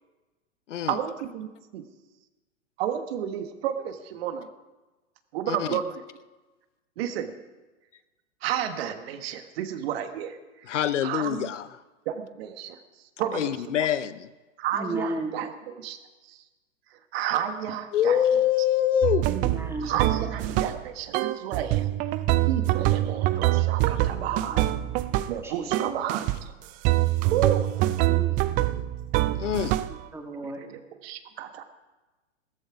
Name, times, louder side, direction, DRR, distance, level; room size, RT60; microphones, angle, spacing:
voice 1, 0.9-1.8 2.8-4.5 5.3-6.0 7.0-7.3 8.4-10.4 11.0-11.5 12.0-12.8 13.2-13.9 14.6-16.0 16.2-16.4 16.9-18.4 19.8-21.9 22.5-24.6 25.3-26.5 27.3-27.9 30.4-31.6, right 10 dB, 50° right, 8 dB, 1.5 m, -31 dB
voice 2, 5.5-5.8 10.7-11.7 13.3-14.3 17.9-19.3 29.4-29.7, left 10 dB, 70° left, 14 dB, 0.8 m, -25 dB
voice 3, 14.7-15.4 19.3-20.1 20.7-20.8 24.1-24.8 25.1-26.0 28.1-28.4 29.9-30.6, right 2 dB, 5° right, 2 dB, 2.3 m, -35 dB
sound 1, 19.0-20.9 21.1-25.4 25.7-26.4 26.8-30.0, right 16 dB, 20° right, 0.4 m, -25 dB
15.5 x 14.0 x 4.9 m, 1.2 s
hypercardioid pair, 110°, 38 cm